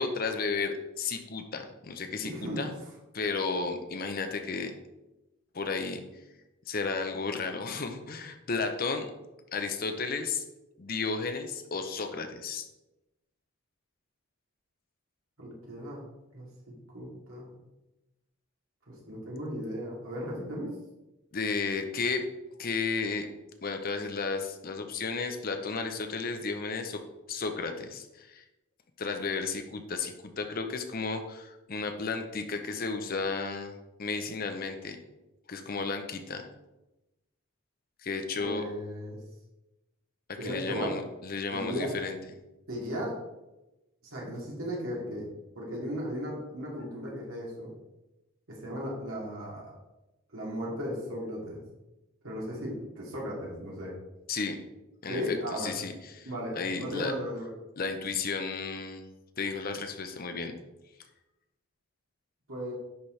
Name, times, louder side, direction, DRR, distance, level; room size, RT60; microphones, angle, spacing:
voice 1, 0.0-2.3 2.6-2.7 3.1-4.7 5.5-6.0 6.7-9.1 9.5-10.4 10.8-12.6 21.3-22.2 22.6-23.3 23.6-27.0 27.3-28.4 29.0-35.0 35.5-36.4 38.0-38.6 40.4-42.2 54.3-54.6 55.0-56.3 56.6-57.1 57.8-59.1 59.4-60.5, left 4 dB, 40° left, 6 dB, 0.7 m, -33 dB
voice 2, 2.2-2.6 15.4-16.0 16.3-16.5 16.9-17.6 18.9-20.7 38.3-39.2 40.4-40.9 41.5-41.9 42.7-43.2 44.0-45.3 45.5-47.7 48.5-49.7 50.3-51.6 52.2-53.9 55.1-55.7 56.2-57.5 62.5-62.7, equal, 75° right, -4 dB, 2.5 m, -36 dB
10.0 x 4.4 x 3.2 m, 0.99 s
head